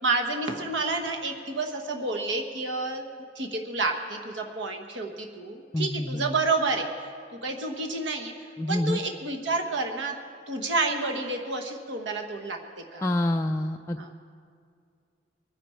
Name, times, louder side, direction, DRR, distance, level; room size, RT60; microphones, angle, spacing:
voice 1, 0.0-3.0 3.3-6.9 7.4-8.3 8.7-10.2 10.5-12.6 12.9-13.2 14.0-14.1, right 3 dB, 65° right, 3 dB, 1.2 m, -29 dB
voice 2, 5.7-6.4 8.6-9.0 13.0-14.2, left 1 dB, 15° left, 3 dB, 0.3 m, -27 dB
23.0 x 10.5 x 4.4 m, 2.3 s
head